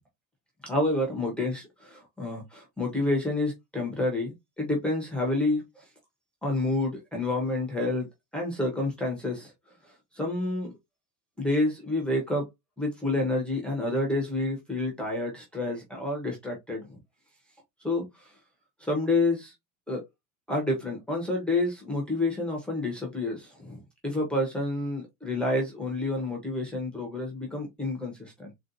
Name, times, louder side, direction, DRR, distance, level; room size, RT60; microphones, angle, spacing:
voice 1, 0.6-5.8 6.4-8.1 8.3-9.5 10.1-10.7 11.4-12.5 12.8-17.0 17.8-18.3 18.8-19.5 19.9-20.0 20.5-28.5, left 2 dB, 5° left, 0.5 m, -29 dB
3.9 x 2.2 x 2.4 m
supercardioid pair, 170°, 41 cm